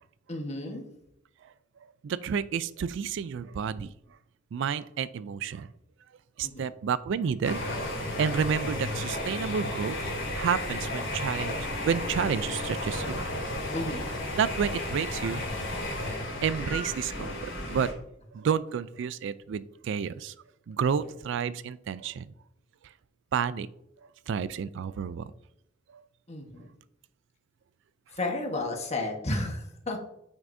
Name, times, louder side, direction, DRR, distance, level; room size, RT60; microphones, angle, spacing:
voice 1, 0.3-0.8 6.4-6.6 13.7-14.1 21.0-21.1 26.3-26.7 28.1-30.0, left 2 dB, 35° left, 3 dB, 1.3 m, -32 dB
voice 2, 2.0-3.9 4.5-5.7 6.4-7.6 8.2-10.0 10.3-11.5 11.9-13.2 14.4-15.4 16.4-17.9 18.3-20.3 20.7-22.3 23.3-23.7 24.3-25.3 25.9-26.0, right 7 dB, 65° right, 17 dB, 0.3 m, -30 dB
sound 1, 7.4-17.9, left 1 dB, 80° left, 2.7 m, -33 dB
9.0 x 6.0 x 2.6 m, 0.80 s
head